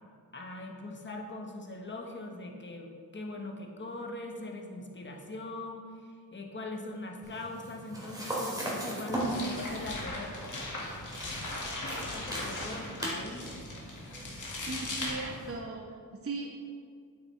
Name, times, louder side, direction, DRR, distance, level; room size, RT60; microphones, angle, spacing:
voice 1, 0.3-10.3 12.1-13.5, left 2 dB, 30° left, 2 dB, 1.1 m, -41 dB
sound 1, 7.2-15.5, right 1 dB, 10° right, 2.2 m, -39 dB
sound 2, 9.1-15.6, left 2 dB, 55° left, 1.8 m, -39 dB
voice 2, 14.7-16.6, right 3 dB, 40° right, 0 dB, 0.8 m, -38 dB
8.5 x 8.5 x 3.2 m, 2.2 s
wide cardioid pair, 100°, 36 cm